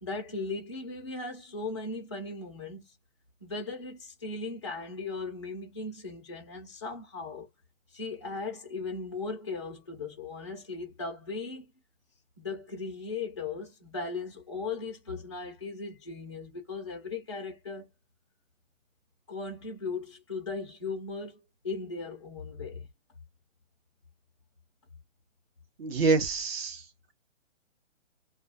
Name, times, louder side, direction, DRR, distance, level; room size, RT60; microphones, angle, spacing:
voice 1, 0.0-2.8 3.4-7.5 7.9-11.6 12.4-17.9 19.3-22.9, left 3 dB, 25° left, 0.3 m, -37 dB
voice 2, 25.8-26.9, right 4 dB, 50° right, 0.8 m, -26 dB
2.3 x 2.2 x 2.5 m
hypercardioid pair, 150°, 40 cm